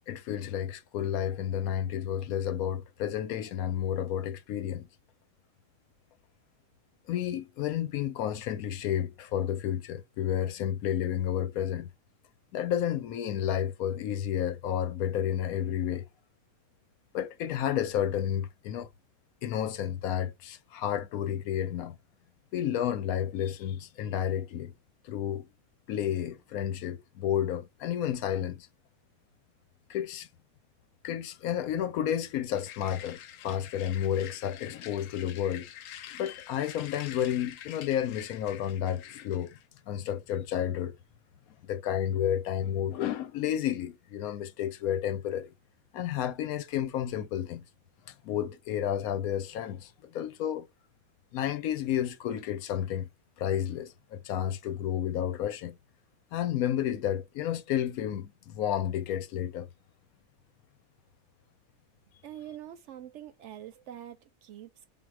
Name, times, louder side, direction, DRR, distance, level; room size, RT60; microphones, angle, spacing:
voice 1, 0.1-4.9 7.1-11.9 12.5-16.1 17.1-18.9 19.4-22.0 22.5-24.7 25.0-25.5 25.9-28.7 29.9-30.3 31.0-35.7 36.1-39.6 39.9-41.0 41.6-45.5 45.9-47.6 48.1-50.7 51.3-53.1 53.4-55.8 56.3-59.7, left 10 dB, 90° left, 1.1 m, -31 dB
sound 1, 32.5-39.7, left 11 dB, 70° left, 0.9 m, -47 dB
voice 2, 62.2-64.9, right 11 dB, 65° right, 0.8 m, -45 dB
3.6 x 2.5 x 4.6 m
omnidirectional pair, 1.5 m